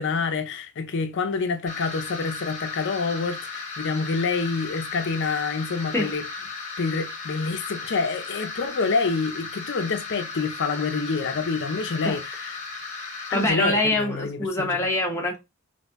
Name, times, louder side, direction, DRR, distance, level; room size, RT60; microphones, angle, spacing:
voice 1, 0.0-6.2 6.8-12.6 13.3-14.8, left 4 dB, 60° left, 0.5 m, -27 dB
sound 1, 1.7-13.5, left 4 dB, 35° left, 1.1 m, -36 dB
voice 2, 13.3-15.4, left 1 dB, 15° left, 0.9 m, -24 dB
4.1 x 2.6 x 2.5 m
head